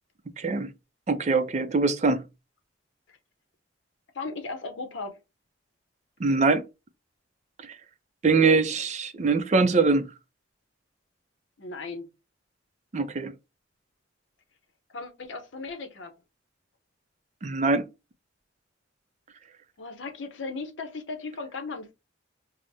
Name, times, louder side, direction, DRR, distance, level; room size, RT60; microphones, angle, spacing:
voice 1, 0.4-0.7 1.1-2.2 6.2-6.6 8.2-10.1 12.9-13.3 17.4-17.9, right 4 dB, 35° right, 0.5 m, -23 dB
voice 2, 4.1-5.2 11.6-12.1 14.9-16.1 19.8-21.9, left 3 dB, 75° left, 0.8 m, -36 dB
4.9 x 2.1 x 2.7 m
head